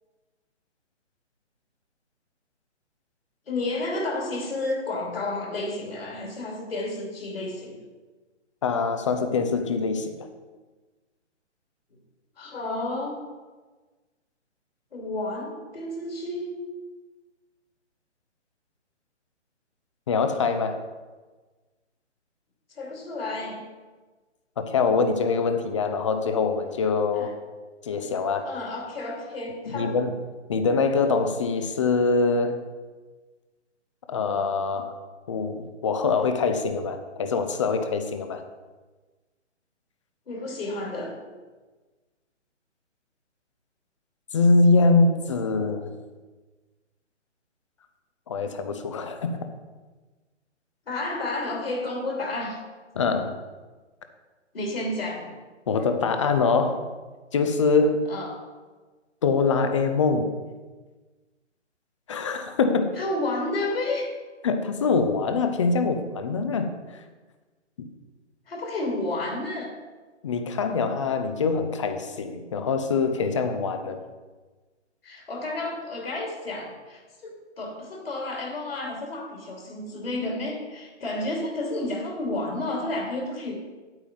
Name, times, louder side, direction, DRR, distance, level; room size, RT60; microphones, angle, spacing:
voice 1, 3.5-7.8 12.4-13.2 14.9-16.6 22.8-23.7 27.1-27.3 28.4-30.0 40.3-41.2 50.9-52.6 54.5-55.3 58.1-58.4 63.0-64.1 68.5-69.7 75.0-83.5, left 2 dB, 55° left, 0 dB, 2.8 m, -31 dB
voice 2, 8.6-10.3 20.1-20.8 24.6-27.3 27.8-28.5 29.7-30.1 30.5-32.7 34.1-34.9 35.3-38.4 44.3-45.9 48.3-49.4 53.0-53.4 55.7-56.8 57.3-58.1 59.2-60.3 62.1-63.0 64.4-66.7 67.8-67.9 70.2-74.0, left 4 dB, 25° left, 8 dB, 0.7 m, -24 dB
9.6 x 8.9 x 4.0 m, 1.3 s
figure-of-eight pair, 135°, 36 cm